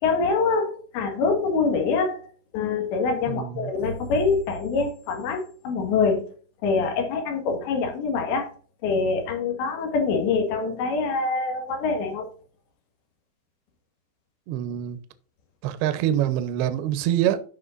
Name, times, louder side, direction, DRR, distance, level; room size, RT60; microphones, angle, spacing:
voice 1, 0.0-2.2 2.5-6.3 6.6-8.5 8.8-12.3, left 4 dB, 70° left, 3.9 m, -25 dB
voice 2, 3.3-3.7 14.5-15.0 15.6-17.4, right 11 dB, 75° right, 2.5 m, -25 dB
15.0 x 5.4 x 2.6 m
omnidirectional pair, 5.4 m